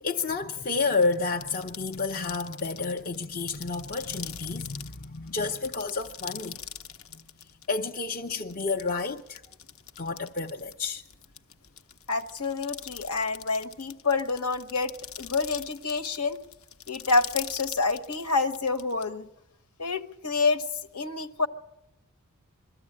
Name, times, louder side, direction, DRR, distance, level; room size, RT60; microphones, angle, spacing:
voice 1, 0.0-6.6 7.1-7.2 7.7-9.4 10.0-11.0, left 4 dB, 40° left, 0.6 m, -30 dB
sound 1, 0.9-19.0, left 9 dB, 70° left, 0.8 m, -43 dB
voice 2, 12.1-16.4 16.9-19.3 19.8-20.6 20.9-21.5, left 3 dB, 85° left, 1.2 m, -28 dB
22.5 x 13.5 x 8.6 m
head